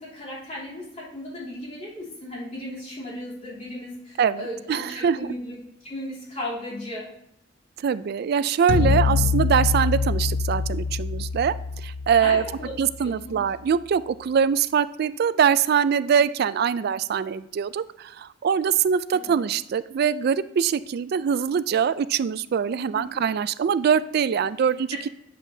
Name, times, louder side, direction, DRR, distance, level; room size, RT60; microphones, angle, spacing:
voice 1, 0.0-5.6 5.8-7.1 12.2-12.7 13.0-13.3 19.1-19.4 22.9-23.2 24.9-25.1, left 1 dB, 40° left, -7 dB, 3.0 m, -36 dB
voice 2, 4.2-5.2 7.8-11.6 11.8-12.4 12.8-25.1, right 7 dB, 55° right, 15 dB, 0.3 m, -23 dB
sound 1, 8.7-13.0, left 5 dB, 70° left, 0.3 m, -25 dB
8.2 x 7.5 x 2.7 m, 0.75 s
head